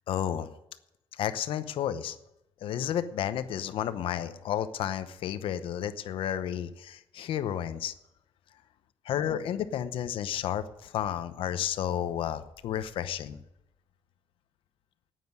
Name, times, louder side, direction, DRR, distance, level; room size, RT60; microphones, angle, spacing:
voice 1, 0.1-0.5 1.1-2.2 2.6-7.9 9.0-13.4, left 10 dB, 75° left, 12 dB, 0.8 m, -32 dB
9.6 x 9.3 x 9.5 m, 0.86 s
cardioid pair, 165°, 9 cm